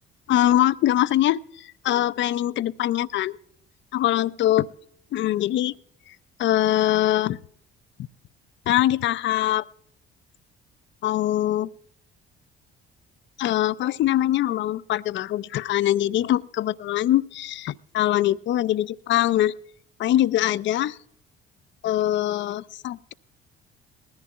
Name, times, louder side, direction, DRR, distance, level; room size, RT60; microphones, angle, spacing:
voice 1, 0.3-3.4 3.9-4.7 5.1-5.7 6.4-7.4 8.7-9.6 11.0-11.7 13.4-19.5 20.0-21.0 21.8-23.1, left 13 dB, 40° left, 19 dB, 0.4 m, -23 dB
20.5 x 14.0 x 2.4 m, 0.70 s
figure-of-eight pair, 50°, 30 cm